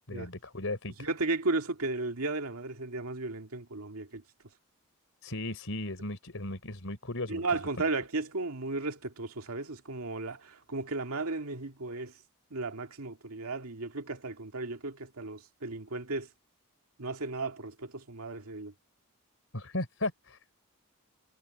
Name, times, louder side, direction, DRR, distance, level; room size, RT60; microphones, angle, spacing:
voice 1, 0.1-1.1 5.2-7.4 7.8-7.9 19.5-20.4, left 2 dB, 65° left, 4.1 m, -36 dB
voice 2, 1.0-4.2 7.3-12.1 12.5-16.3 17.0-18.7, right 3 dB, 80° right, 2.2 m, -35 dB
head